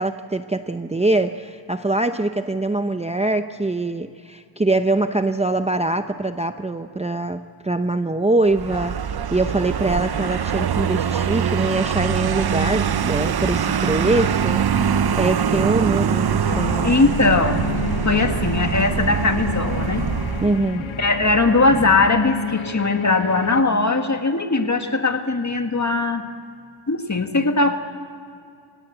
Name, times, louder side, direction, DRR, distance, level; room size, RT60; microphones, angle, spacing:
voice 1, 0.0-9.0 9.3-14.9 15.2-16.9 20.4-20.9, right 2 dB, 15° right, 8 dB, 0.6 m, -23 dB
Vehicle, 8.5-20.7, right 8 dB, 50° right, 0.7 m, -23 dB
sound 1, 13.1-22.1, right 1 dB, 35° right, 7.9 m, -34 dB
sound 2, 16.4-23.6, left 7 dB, 75° left, 1.0 m, -31 dB
voice 2, 16.8-17.6 18.0-20.0 21.0-26.2 26.9-27.8, left 3 dB, 35° left, 5 dB, 2.0 m, -19 dB
27.5 x 17.5 x 8.0 m, 2.4 s
wide cardioid pair, 95°, 48 cm